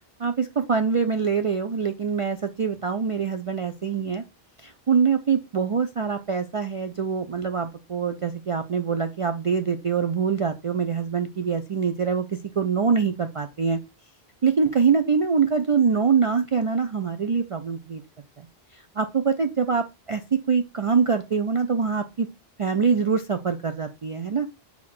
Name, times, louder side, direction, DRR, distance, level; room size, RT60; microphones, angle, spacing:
voice 1, 0.2-4.2 4.6-13.8 14.4-18.0 18.4-18.5 18.7-22.3 22.6-24.5, right 6 dB, 50° right, 7 dB, 0.4 m, -24 dB
6.5 x 2.9 x 5.7 m, 0.26 s
omnidirectional pair, 1.0 m